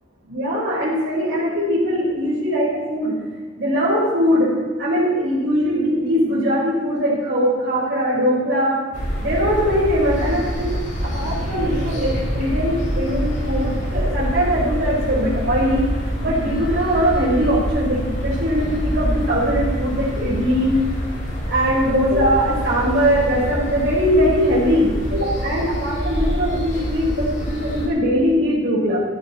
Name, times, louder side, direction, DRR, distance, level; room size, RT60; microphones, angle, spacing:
voice 1, 0.3-3.1 3.6-4.5 4.8-8.8 9.2-15.8 16.2-20.7 21.5-29.0, equal, 55° right, -9 dB, 4.9 m, -21 dB
sound 1, 8.9-27.9, equal, 40° left, 5.2 m, -26 dB
16.0 x 15.0 x 4.3 m, 1.5 s
head